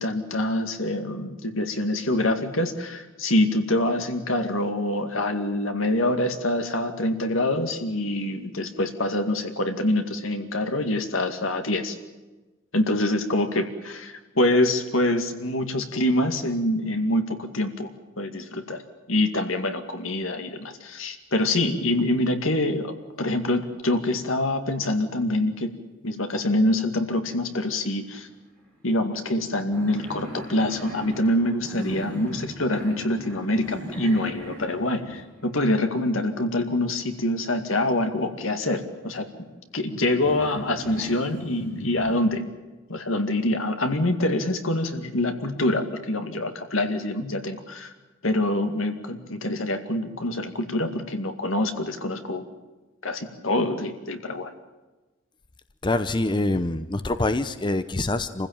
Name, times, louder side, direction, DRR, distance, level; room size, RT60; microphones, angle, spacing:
voice 1, 0.0-12.0 12.7-17.9 18.2-18.8 19.1-25.7 26.0-28.3 28.8-39.2 39.7-42.5 42.9-47.9 48.2-52.4 53.0-54.5, left 1 dB, 80° left, 6 dB, 2.3 m, -25 dB
sound 1, 27.6-28.4 28.6-28.7 29.1-37.3 37.9-39.9 40.2-42.2, right 1 dB, 5° left, 6.6 m, -40 dB
voice 2, 55.8-58.5, left 2 dB, 25° left, 11 dB, 0.7 m, -25 dB
27.0 x 15.5 x 8.9 m, 1.2 s
head